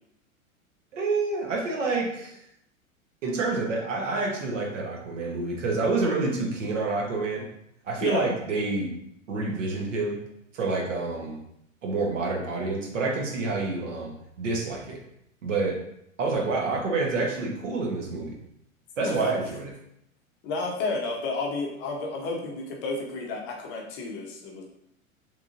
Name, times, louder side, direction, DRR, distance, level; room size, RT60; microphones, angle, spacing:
voice 1, 0.9-2.4 3.2-7.5 7.8-8.9 9.3-10.2 10.5-11.4 11.8-15.0 15.4-15.8 16.2-18.4 19.0-19.7, right 3 dB, 65° right, 0 dB, 0.9 m, -28 dB
voice 2, 20.4-24.6, left 3 dB, 30° left, -1 dB, 0.6 m, -31 dB
3.6 x 3.1 x 2.4 m, 0.76 s
figure-of-eight pair, 90°, 41 cm